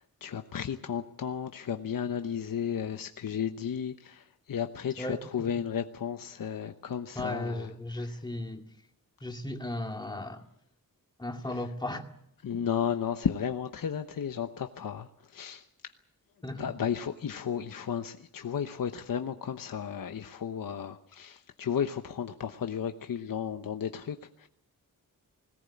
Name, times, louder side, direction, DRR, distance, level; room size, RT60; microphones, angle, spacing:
voice 1, 0.0-7.7 8.0-8.2 11.5-11.6 12.4-15.9 16.6-24.5, left 8 dB, 70° left, 7 dB, 1.0 m, -34 dB
voice 2, 5.0-5.5 7.2-8.6 9.2-10.4 11.2-12.0 12.5-12.6 16.4-16.6, left 1 dB, 15° left, 3 dB, 2.2 m, -36 dB
21.0 x 18.0 x 8.5 m, 0.74 s
wide cardioid pair, 145°, 35 cm